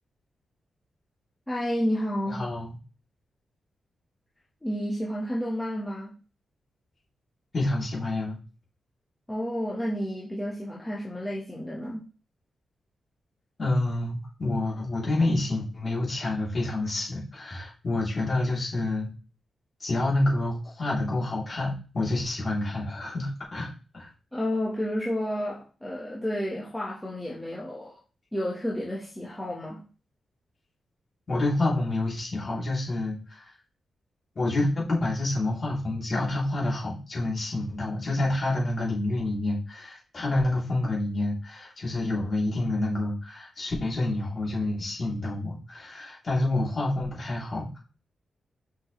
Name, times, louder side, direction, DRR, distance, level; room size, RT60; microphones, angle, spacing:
voice 1, 1.5-2.4 4.6-6.1 9.3-12.0 24.3-28.0 28.3-29.8, equal, 5° left, -5 dB, 1.5 m, -31 dB
voice 2, 2.3-2.7 7.5-8.4 13.6-19.1 19.8-24.1 31.3-33.5 34.4-47.8, left 2 dB, 35° left, -4 dB, 3.5 m, -28 dB
6.1 x 5.9 x 3.3 m, 0.34 s
wide cardioid pair, 165°, 0 cm